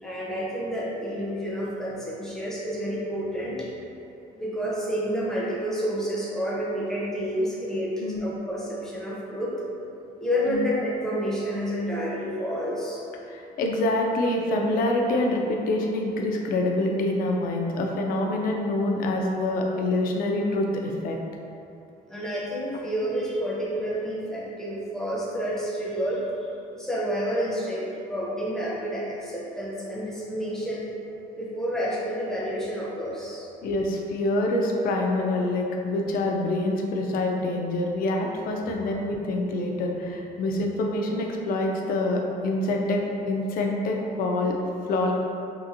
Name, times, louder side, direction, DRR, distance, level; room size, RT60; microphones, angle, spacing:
voice 1, 0.0-3.7 4.3-9.5 10.2-13.0 22.1-30.9 31.3-33.5, equal, 5° left, -6 dB, 0.6 m, -29 dB
voice 2, 13.3-21.2 33.6-44.5 44.9-45.1, left 2 dB, 60° left, 1 dB, 0.4 m, -26 dB
2.8 x 2.5 x 2.5 m, 2.7 s
cardioid pair, 110°, 17 cm